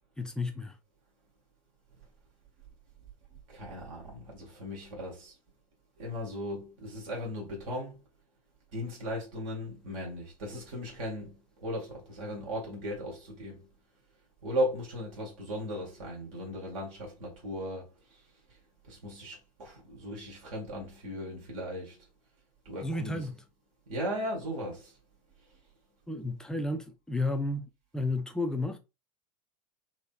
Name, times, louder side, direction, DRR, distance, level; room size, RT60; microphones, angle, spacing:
voice 1, 0.2-0.7 22.8-23.4 26.1-27.7 27.9-28.8, left 2 dB, 5° left, 0.4 m, -32 dB
voice 2, 3.5-5.3 6.0-8.0 8.7-13.7 14.4-17.9 18.9-22.0 22.6-23.3 23.9-24.9, equal, 55° right, 1.6 m, -37 dB
3.9 x 2.8 x 2.3 m
figure-of-eight pair, 85°, 19 cm